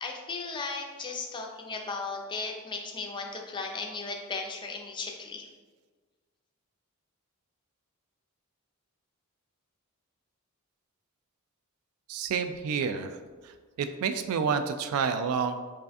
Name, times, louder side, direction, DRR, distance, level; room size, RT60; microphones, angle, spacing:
voice 1, 0.0-5.5, left 4 dB, 20° left, 1 dB, 0.4 m, -36 dB
voice 2, 12.1-13.2 13.4-15.6, right 6 dB, 70° right, 9 dB, 0.3 m, -29 dB
4.7 x 2.5 x 2.5 m, 1.4 s
head